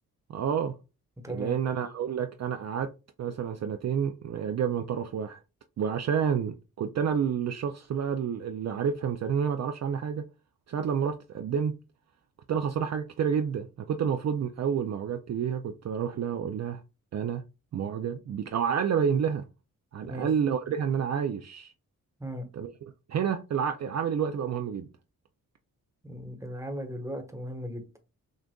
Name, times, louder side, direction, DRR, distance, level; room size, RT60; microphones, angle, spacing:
voice 1, 0.3-0.8 1.3-2.9 3.2-5.4 5.8-10.2 10.7-11.8 12.5-16.8 17.1-17.4 17.7-19.5 19.9-21.7 22.5-24.9, right 7 dB, 50° right, 0.4 m, -29 dB
voice 2, 1.2-1.6 20.0-20.3 22.2-22.5 26.0-27.8, equal, 10° right, 1.1 m, -37 dB
6.3 x 2.4 x 2.3 m
cardioid pair, 65°, 36 cm